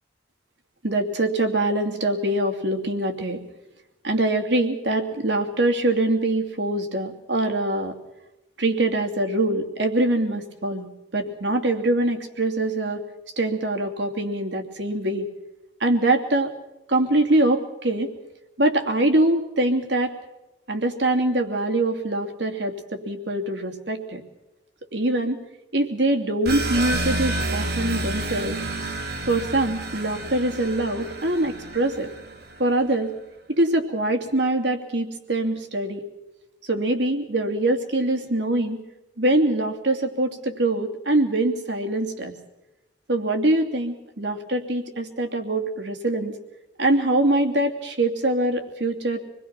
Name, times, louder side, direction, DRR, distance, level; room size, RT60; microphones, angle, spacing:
voice 1, 0.8-3.4 4.0-8.0 8.6-10.9 11.1-13.0 13.4-15.3 15.8-16.5 16.9-18.1 18.6-20.1 20.7-24.2 24.9-25.4 25.7-28.6 29.3-32.1 32.6-33.2 33.5-36.0 36.7-38.9 39.2-42.3 43.1-46.3 46.8-49.2, right 1 dB, 70° right, 4 dB, 2.8 m, -23 dB
sound 1, 26.5-32.7, right 2 dB, 55° right, 2.2 m, -29 dB
27.0 x 21.0 x 6.0 m, 0.96 s
head